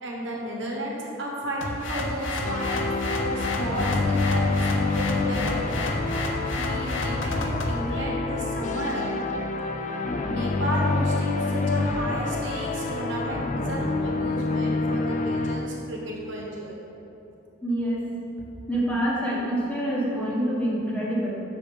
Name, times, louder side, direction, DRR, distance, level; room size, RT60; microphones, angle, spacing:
voice 1, 0.0-6.0 6.6-9.1 10.3-16.7, right 1 dB, 65° right, -3 dB, 1.3 m, -33 dB
sound 1, 1.6-7.8, left 2 dB, 65° left, 0.8 m, -30 dB
sound 2, 2.4-15.6, left 3 dB, 35° left, 0.4 m, -27 dB
voice 2, 17.6-18.1 18.7-21.3, equal, 5° left, -7 dB, 1.3 m, -26 dB
7.0 x 5.0 x 5.0 m, 3.0 s
head